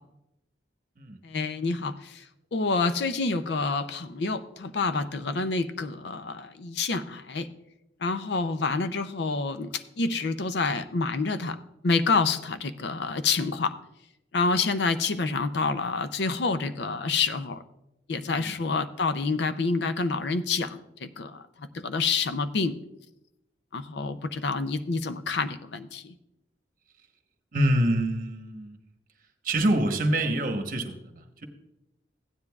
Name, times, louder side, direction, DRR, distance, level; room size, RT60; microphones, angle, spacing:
voice 1, 1.2-7.5 8.0-11.6 11.8-13.8 14.3-17.6 18.1-22.8 23.7-26.1, left 4 dB, 70° left, 11 dB, 0.5 m, -28 dB
voice 2, 18.2-18.6 27.5-28.8 29.4-31.4, right 1 dB, 50° right, 5 dB, 1.1 m, -26 dB
15.5 x 9.8 x 2.4 m, 0.89 s
head